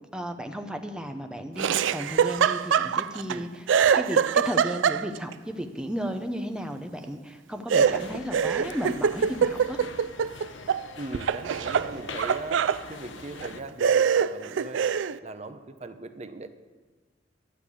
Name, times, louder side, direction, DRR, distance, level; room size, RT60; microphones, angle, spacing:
voice 1, 0.1-3.6 3.9-9.8, equal, 5° right, 6 dB, 0.7 m, -34 dB
Laughter, 1.6-3.4 3.7-5.3 7.7-10.8 11.1-12.8 13.4-13.5 13.8-15.2, right 7 dB, 85° right, 0.4 m, -24 dB
sound 1, 7.7-13.6, left 4 dB, 85° left, 0.8 m, -43 dB
voice 2, 11.0-14.8 15.2-16.5, right 2 dB, 35° right, 9 dB, 0.7 m, -39 dB
11.5 x 6.7 x 8.4 m, 1.3 s
head